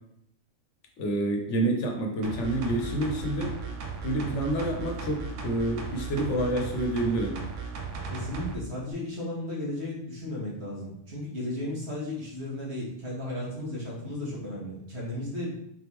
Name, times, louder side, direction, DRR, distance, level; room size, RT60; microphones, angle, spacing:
voice 1, 1.0-3.5 4.0-7.4, right 1 dB, 75° left, 2 dB, 1.1 m, -28 dB
sound 1, 2.2-8.6 8.9-9.0, right 5 dB, 80° right, 1.0 m, -36 dB
voice 2, 8.1-15.6, left 1 dB, 65° right, -4 dB, 1.6 m, -35 dB
3.9 x 3.4 x 3.0 m, 0.73 s
omnidirectional pair, 1.3 m